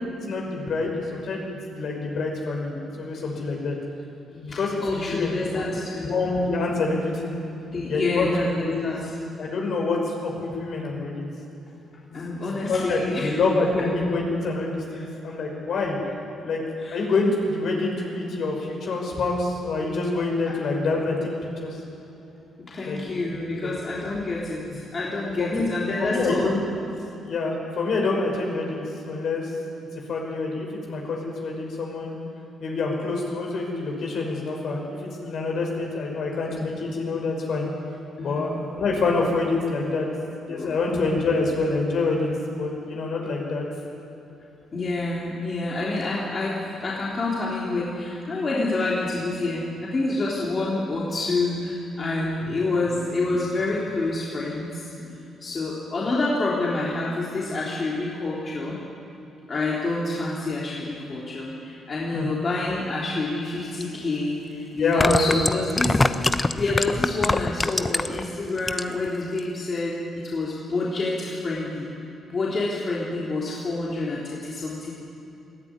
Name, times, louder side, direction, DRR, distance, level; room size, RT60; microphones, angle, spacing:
voice 1, 0.3-3.7 4.3-5.6 6.0-7.4 7.9-8.8 9.4-11.3 12.1-16.0 16.4-16.6 16.9-21.3 21.6-21.7 22.8-23.0 23.6-23.7 24.7-24.8 25.4-25.7 26.0-26.6 27.2-29.5 30.1-32.2 32.6-37.7 38.2-40.1 40.4-43.6 55.0-55.1 62.1-62.3 64.8-65.7, left 3 dB, 65° left, 0 dB, 5.6 m, -26 dB
voice 2, 4.5-6.1 7.7-9.1 12.1-13.3 14.9-15.1 16.8-17.0 22.6-26.5 38.2-38.6 40.5-40.8 44.7-54.9 55.4-58.8 59.5-66.0 66.5-71.9 72.3-74.9, left 2 dB, 40° left, -5 dB, 3.4 m, -28 dB
sound 1, 63.8-63.9 64.8-68.2 68.6-69.1 69.4-69.5, left 2 dB, 20° left, 0.8 m, -23 dB
20.0 x 14.0 x 9.7 m, 2.9 s
cardioid pair, 90°, 0 cm